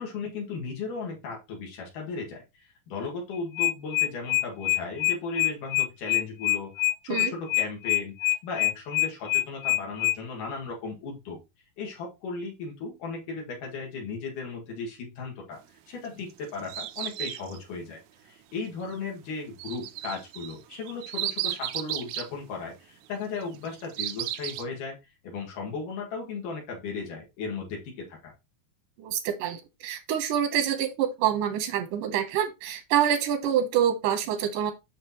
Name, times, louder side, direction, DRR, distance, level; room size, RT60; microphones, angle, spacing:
voice 1, 0.0-11.4 11.8-25.0 25.2-28.3, left 4 dB, 85° left, -1 dB, 3.5 m, -36 dB
sound 1, 3.3-10.2, left 17 dB, 60° left, 1.8 m, -25 dB
sound 2, 16.0-17.6 19.6-22.3 23.4-24.6, right 13 dB, 75° right, 1.9 m, -34 dB
voice 2, 29.0-34.7, right 9 dB, 90° right, 6 dB, 2.5 m, -26 dB
7.9 x 6.3 x 3.0 m, 0.23 s
omnidirectional pair, 3.6 m